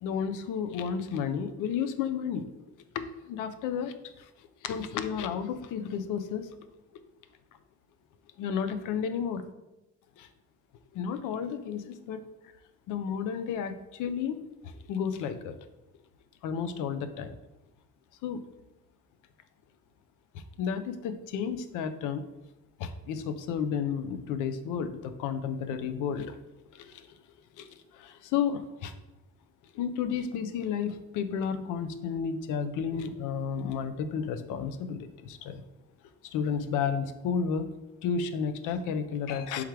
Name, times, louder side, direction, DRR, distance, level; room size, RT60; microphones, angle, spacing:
voice 1, 0.0-2.5 2.9-4.3 4.6-6.5 8.4-9.5 10.2-10.3 10.9-12.2 12.9-14.4 14.7-15.6 16.4-17.4 18.2-18.4 20.6-22.2 22.8-26.3 26.7-27.1 27.6-27.7 27.9-28.9 29.7-35.6 36.2-37.7 38.0-39.6, left 7 dB, 85° left, 10 dB, 0.5 m, -32 dB
3.6 x 3.2 x 4.5 m, 0.99 s
cardioid pair, 90°, 30 cm